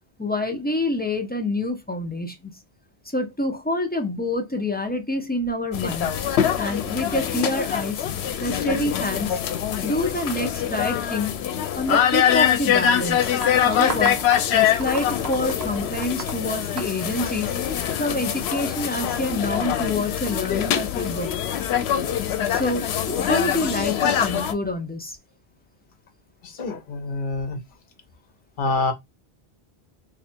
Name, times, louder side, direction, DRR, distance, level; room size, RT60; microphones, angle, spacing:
voice 1, 0.2-2.5 3.1-6.1 6.6-8.0 8.4-9.4 9.8-11.3 11.7-14.2 14.5-17.5 18.0-21.3 22.5-25.2, left 2 dB, 15° left, 0.4 m, -27 dB
sound 1, 5.7-24.5, left 9 dB, 90° left, 0.8 m, -24 dB
sound 2, 13.4-17.8, right 5 dB, 80° right, 1.2 m, -34 dB
voice 2, 26.4-27.6 28.6-28.9, left 3 dB, 55° left, 1.0 m, -26 dB
3.0 x 2.4 x 4.3 m
omnidirectional pair, 1.0 m